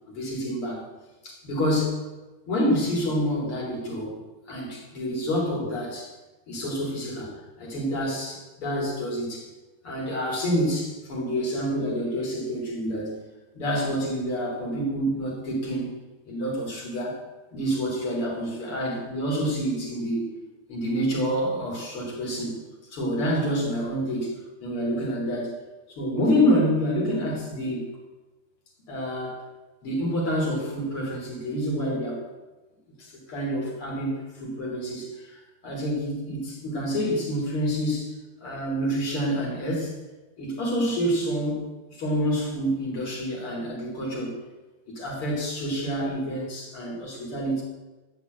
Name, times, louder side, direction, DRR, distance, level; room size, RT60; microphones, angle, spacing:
voice 1, 0.1-0.9 1.2-2.0 2.5-4.2 4.5-6.1 6.5-9.5 9.8-13.2 13.5-15.9 16.3-17.2 17.5-20.3 20.7-22.6 22.9-24.4 24.6-25.6 25.9-27.9 28.9-29.4 29.8-32.2 33.0-38.1 38.4-39.9 40.4-41.6 41.9-44.4 45.0-47.6, equal, 80° left, -3 dB, 4.1 m, -27 dB
12.0 x 5.9 x 8.0 m, 1.2 s
omnidirectional pair, 2.4 m